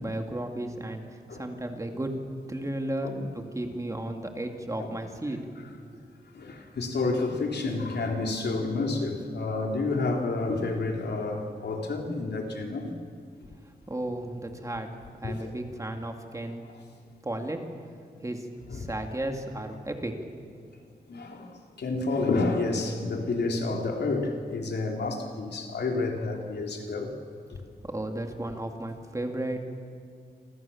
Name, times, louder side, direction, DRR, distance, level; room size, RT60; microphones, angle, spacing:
voice 1, 0.0-2.2 2.5-5.4 13.9-14.9 15.2-16.6 17.2-17.6 18.2-20.2 27.8-29.6, right 1 dB, 20° right, 4 dB, 2.4 m, -34 dB
voice 2, 6.3-12.9 15.2-15.6 18.7-18.9 21.1-27.1, left 3 dB, 85° left, 2 dB, 3.6 m, -29 dB
28.5 x 25.5 x 7.2 m, 2.1 s
wide cardioid pair, 160°, 17 cm